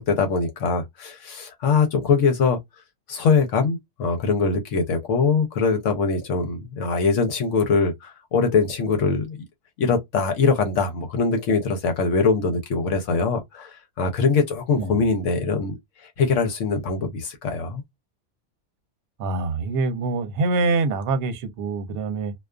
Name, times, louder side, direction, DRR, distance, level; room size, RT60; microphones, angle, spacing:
voice 1, 0.0-2.6 3.1-9.4 9.8-15.8 16.2-17.8, left 4 dB, 75° left, 1.0 m, -22 dB
voice 2, 19.2-22.3, right 3 dB, 70° right, 0.9 m, -25 dB
2.3 x 2.3 x 2.2 m
omnidirectional pair, 1.3 m